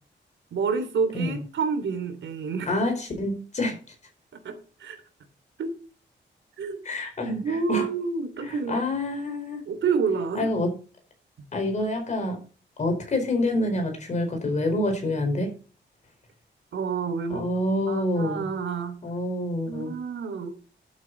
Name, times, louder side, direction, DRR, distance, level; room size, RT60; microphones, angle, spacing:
voice 1, 0.5-2.8 4.4-5.0 5.6-5.8 6.6-6.8 7.4-8.8 9.7-10.5 16.7-17.5 17.9-18.9 19.7-20.5, right 5 dB, 90° right, 7 dB, 3.1 m, -28 dB
voice 2, 2.7-3.8 6.8-7.8 8.4-9.6 10.4-10.7 11.5-12.4 12.8-15.5 17.3-18.5 19.0-19.9, left 1 dB, 40° left, 4 dB, 4.4 m, -27 dB
12.0 x 8.4 x 4.0 m, 0.36 s
wide cardioid pair, 175°, 19 cm